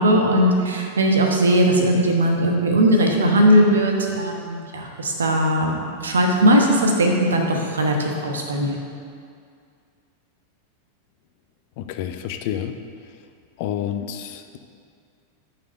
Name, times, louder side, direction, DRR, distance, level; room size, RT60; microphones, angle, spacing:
voice 1, 0.0-8.8, right 1 dB, 70° right, 2 dB, 1.1 m, -19 dB
voice 2, 11.8-12.7 13.6-14.6, left 10 dB, 50° left, 8 dB, 0.5 m, -29 dB
6.5 x 6.1 x 6.7 m, 2.3 s
figure-of-eight pair, 90°, 0 cm